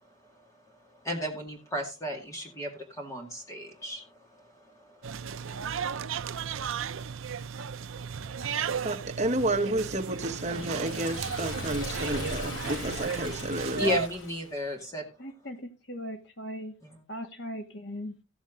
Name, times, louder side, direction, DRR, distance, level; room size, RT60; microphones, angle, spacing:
voice 1, 1.0-5.2 5.5-5.6 13.8-15.0, left 1 dB, 15° left, 2.2 m, -34 dB
sound 1, 5.0-14.1, right 7 dB, 75° right, 0.5 m, -34 dB
voice 2, 8.8-14.0, right 1 dB, 30° right, 1.3 m, -31 dB
Liquid, 9.9-14.6, left 2 dB, 75° left, 7.8 m, -40 dB
voice 3, 15.2-16.7 17.1-18.2, equal, 55° left, 2.0 m, -39 dB
15.0 x 7.2 x 3.8 m
head